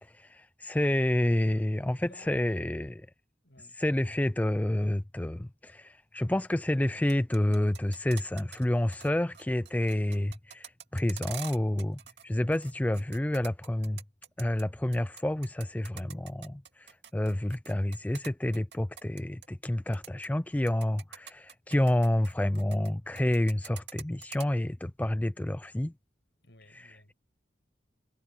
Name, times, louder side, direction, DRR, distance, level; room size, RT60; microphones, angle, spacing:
voice 1, 0.0-3.1 3.8-14.0 14.4-25.9, left 1 dB, 10° left, 0.3 m, -29 dB
voice 2, 1.4-2.6 3.4-3.8 26.4-27.1, left 1 dB, 70° left, 7.5 m, -57 dB
sound 1, 6.9-8.6 8.9-9.1 9.3-12.2 12.5-14.6 14.9-19.7 19.9-20.3 20.7-22.9 23.2-24.5, right 9 dB, 65° right, 2.4 m, -46 dB
head